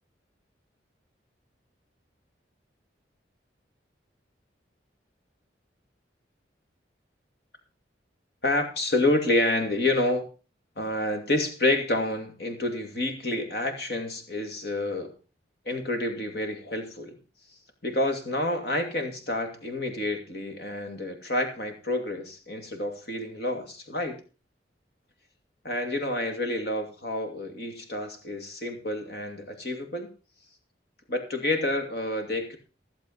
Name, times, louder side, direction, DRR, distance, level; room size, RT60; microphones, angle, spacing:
voice 1, 8.4-10.3 10.8-15.1 15.6-17.2 17.8-24.2 25.6-30.1 31.1-32.6, left 2 dB, 55° left, 5 dB, 2.5 m, -28 dB
15.0 x 7.4 x 5.5 m, 0.34 s
head